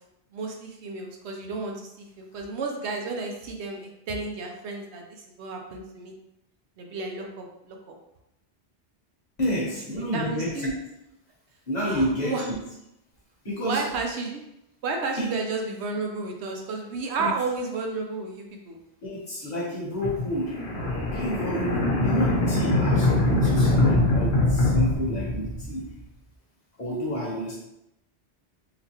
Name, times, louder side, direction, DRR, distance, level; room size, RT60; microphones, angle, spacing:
voice 1, 0.3-6.1 6.8-7.9 10.1-10.6 11.9-12.4 13.6-14.4 14.8-18.8, right 3 dB, 80° right, 2 dB, 0.9 m, -32 dB
voice 2, 9.4-10.7 11.7-12.6 13.4-13.8 15.2-15.4 17.2-17.3 19.0-20.6 20.9-25.9 26.8-27.6, equal, 40° left, -5 dB, 1.0 m, -30 dB
sound 1, 20.0-25.9, left 1 dB, 70° left, 1.0 m, -23 dB
3.8 x 2.3 x 2.9 m, 0.84 s
omnidirectional pair, 1.1 m